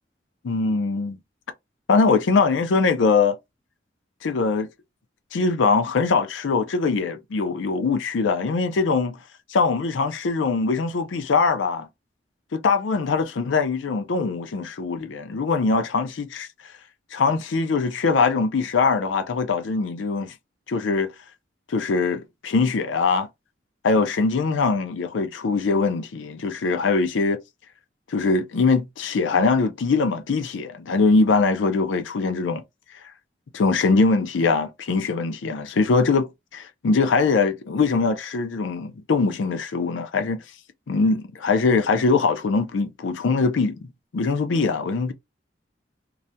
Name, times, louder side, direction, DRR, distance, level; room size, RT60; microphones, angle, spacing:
voice 1, 0.4-1.2 1.9-3.4 4.2-4.7 5.3-9.2 9.5-11.9 12.5-16.5 17.1-20.3 20.7-21.1 21.7-23.3 23.8-27.4 28.1-32.6 33.5-40.4 40.9-45.1, left 4 dB, 90° left, 0.5 m, -22 dB
2.4 x 2.1 x 2.6 m
head